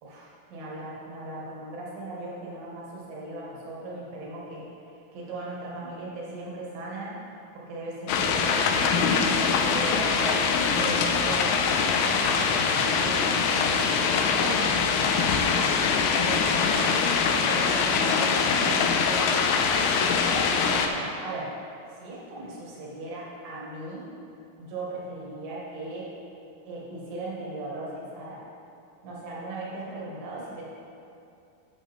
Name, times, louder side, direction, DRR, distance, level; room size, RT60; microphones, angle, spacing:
voice 1, 0.0-7.2 7.5-15.7 16.2-17.0 17.4-19.6 19.9-21.6 21.9-24.1 24.6-26.1 26.7-28.4 29.0-30.6, right 2 dB, 70° right, -5 dB, 3.2 m, -37 dB
sound 1, 8.1-20.9, left 5 dB, 85° left, 2.5 m, -23 dB
12.0 x 6.3 x 3.5 m, 2.7 s
omnidirectional pair, 4.3 m